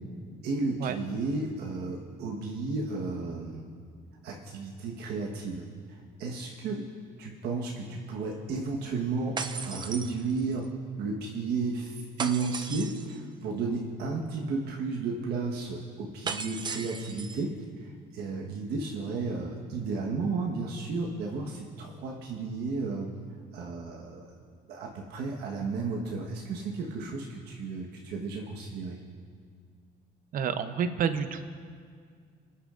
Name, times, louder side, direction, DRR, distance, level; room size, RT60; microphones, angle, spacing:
voice 1, 0.4-3.7 4.2-6.9 7.2-10.7 11.0-17.5 17.8-23.1 23.5-24.3 24.7-29.0, right 4 dB, 75° right, -1 dB, 1.3 m, -33 dB
sound 1, 9.4-10.7 12.2-13.2 16.3-17.4, right 5 dB, 25° right, 0.5 m, -36 dB
voice 2, 30.3-31.5, right 7 dB, 55° right, 10 dB, 0.7 m, -29 dB
28.5 x 10.0 x 2.5 m, 2.1 s
cardioid pair, 110°, 17 cm